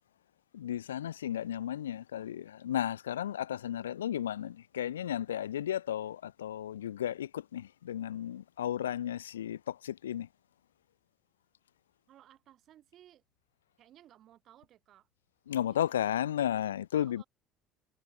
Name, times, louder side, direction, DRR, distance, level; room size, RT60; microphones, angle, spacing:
voice 1, 0.5-10.3 15.5-17.2, left 10 dB, 75° left, 0.4 m, -34 dB
voice 2, 12.1-13.2 13.8-15.1 15.7-16.2 16.9-17.3, right 12 dB, 50° right, 7.9 m, -59 dB
figure-of-eight pair, 60°, 0 cm